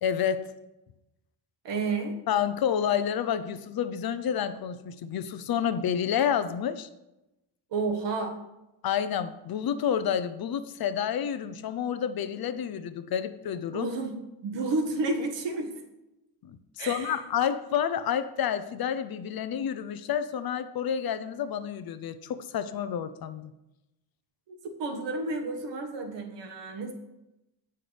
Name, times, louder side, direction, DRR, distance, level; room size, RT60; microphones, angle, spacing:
voice 1, 0.0-0.5 2.3-6.9 8.8-13.9 16.4-23.5, left 8 dB, 55° left, 11 dB, 0.7 m, -29 dB
voice 2, 1.6-2.1 7.7-8.4 13.7-15.8 16.8-17.2 24.8-26.9, right 3 dB, 80° right, 3 dB, 1.6 m, -31 dB
17.0 x 5.8 x 3.4 m, 0.94 s
wide cardioid pair, 165°, 43 cm